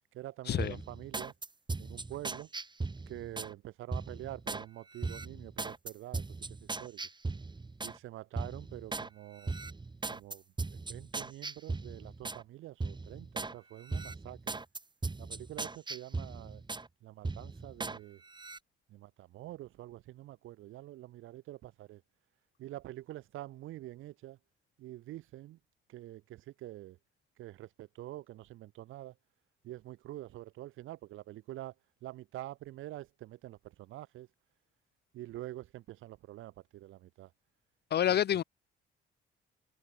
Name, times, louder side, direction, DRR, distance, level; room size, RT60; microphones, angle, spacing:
voice 1, 0.1-1.3 1.8-2.5 3.1-6.2 6.6-7.0 7.8-9.5 10.1-10.4 10.7-14.6 15.2-16.6 17.0-18.2 18.9-22.0 22.6-24.4 24.8-25.6 25.9-27.0 27.4-29.1 29.6-31.7 32.0-34.3 35.1-37.3 38.1-38.4, right 15 dB, 85° right, 2.8 m, -46 dB
sound 1, 0.6-3.5 3.9-4.6 5.0-8.0 8.4-9.1 9.4-12.4 12.8-13.5 13.9-16.9 17.2-18.0 18.3-18.6, right 3 dB, 20° right, 4.3 m, -38 dB
voice 2, 37.9-38.4, left 11 dB, 55° left, 0.6 m, -28 dB
cardioid pair, 90°, 20 cm